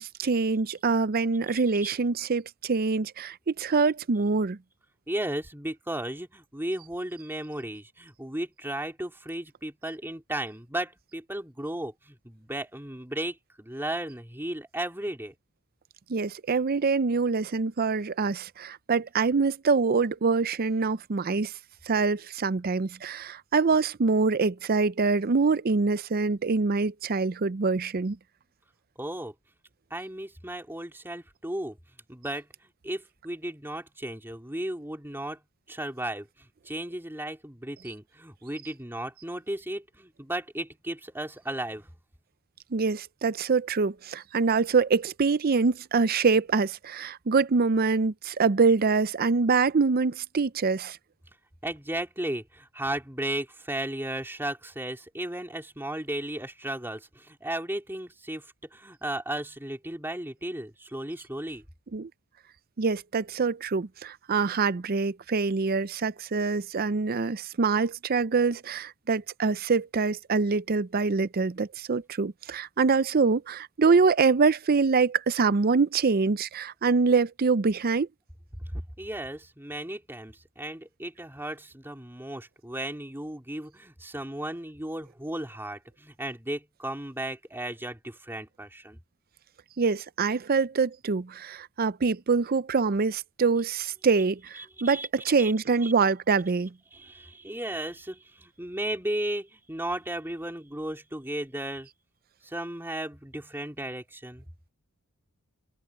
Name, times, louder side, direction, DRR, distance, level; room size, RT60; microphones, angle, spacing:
voice 1, 0.0-4.6 16.1-21.5 21.9-28.2 42.7-51.0 61.9-62.1 62.8-78.1 89.8-96.7, right 4 dB, 40° right, 0.5 m, -25 dB
voice 2, 5.1-15.3 29.0-29.3 29.9-31.8 32.1-35.4 35.7-41.9 51.6-61.6 78.7-89.0 94.8-95.1 95.4-95.5 95.8-95.9 96.9-101.9 102.4-104.4, right 1 dB, 10° right, 3.2 m, -35 dB
head